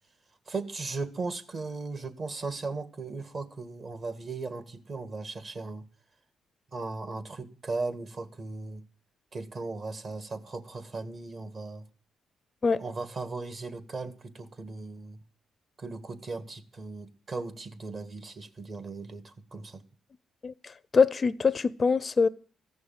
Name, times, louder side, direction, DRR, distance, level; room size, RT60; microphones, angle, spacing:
voice 1, 0.5-5.8 6.7-8.8 9.3-11.9 12.8-15.2 15.8-19.8, right 3 dB, 40° right, 1.6 m, -37 dB
voice 2, 20.9-22.3, left 5 dB, 35° left, 0.5 m, -23 dB
14.5 x 6.3 x 9.1 m
cardioid pair, 90°, 0 cm